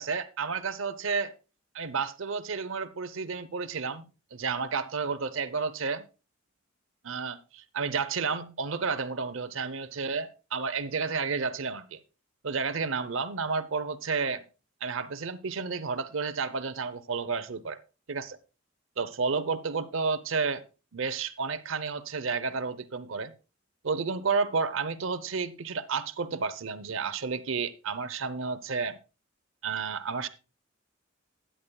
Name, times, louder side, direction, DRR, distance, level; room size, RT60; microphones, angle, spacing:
voice 1, 0.0-1.3 1.7-4.1 4.3-6.0 7.0-12.0 12.4-14.4 14.8-17.8 18.1-18.4 19.0-20.6 20.9-23.3 23.8-29.0 29.6-30.3, right 5 dB, 75° right, 0.8 m, -31 dB
15.5 x 10.0 x 2.3 m
head